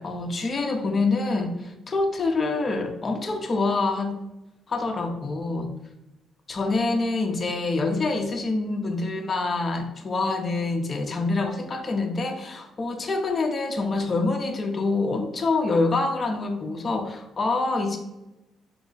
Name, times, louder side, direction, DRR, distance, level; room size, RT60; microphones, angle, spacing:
voice 1, 0.0-4.1 4.7-5.7 6.5-18.0, left 3 dB, 35° left, 3 dB, 0.8 m, -26 dB
5.3 x 2.3 x 3.9 m, 0.93 s
cardioid pair, 90°, 0 cm